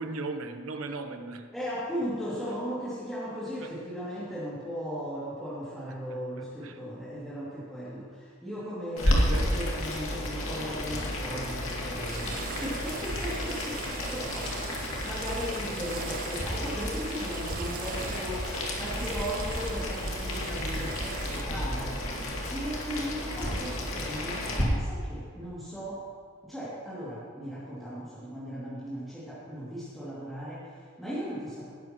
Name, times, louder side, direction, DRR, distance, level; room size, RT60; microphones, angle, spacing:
voice 1, 0.0-1.5 3.6-3.8 6.1-6.8 9.0-9.7 14.2-14.9, right 3 dB, 85° right, 7 dB, 1.0 m, -39 dB
voice 2, 1.5-22.0 22.5-26.0 26.4-31.7, equal, ahead, -11 dB, 2.7 m, -37 dB
Boiling, 9.0-24.6, left 1 dB, 75° left, 2.4 m, -32 dB
sound 1, 12.1-21.4, right 7 dB, 40° right, 0.5 m, -42 dB
18.5 x 11.0 x 3.1 m, 2.2 s
head